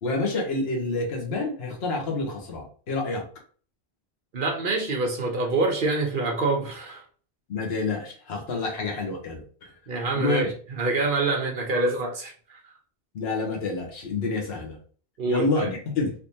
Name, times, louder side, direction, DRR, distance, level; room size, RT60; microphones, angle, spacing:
voice 1, 0.0-3.2 7.5-9.7 10.1-10.4 13.1-14.8 15.2-16.1, left 3 dB, 70° left, 0 dB, 1.2 m, -28 dB
voice 2, 4.3-7.0 9.9-12.6 15.2-15.7, right 3 dB, 55° right, 1 dB, 0.8 m, -26 dB
3.5 x 2.8 x 2.7 m, 0.43 s
omnidirectional pair, 1.1 m